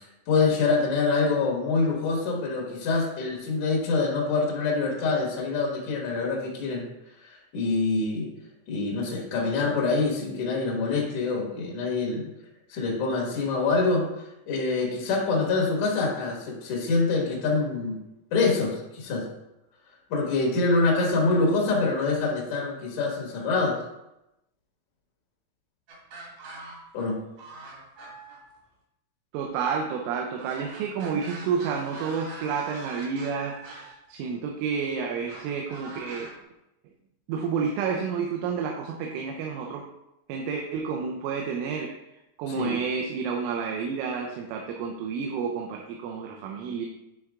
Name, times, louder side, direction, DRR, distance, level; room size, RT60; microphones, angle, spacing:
voice 1, 0.3-6.8 7.2-8.3 8.7-12.3 12.7-14.1 14.5-18.0 18.3-19.2 20.1-23.8 26.9-27.2 42.5-42.8, left 3 dB, 80° left, -2 dB, 1.6 m, -25 dB
sound 1, 25.9-27.1 27.4-28.6 30.3-33.9 35.3-36.3, right 2 dB, 65° right, 1.7 m, -43 dB
voice 2, 29.3-36.3 37.3-39.8 40.3-41.9 42.4-46.9, right 6 dB, 90° right, 1 dB, 3.2 m, -30 dB
9.3 x 3.6 x 3.6 m, 0.89 s
omnidirectional pair, 5.6 m